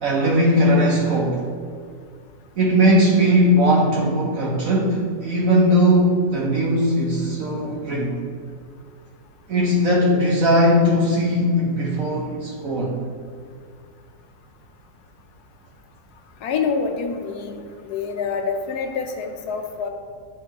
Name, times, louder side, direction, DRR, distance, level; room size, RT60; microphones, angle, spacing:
voice 1, 0.0-1.5 2.6-8.2 9.5-13.0, equal, 60° right, -3 dB, 1.1 m, -19 dB
voice 2, 16.4-17.6 17.9-19.9, left 5 dB, 70° left, 5 dB, 1.1 m, -26 dB
10.5 x 3.6 x 3.0 m, 2.2 s
omnidirectional pair, 1.8 m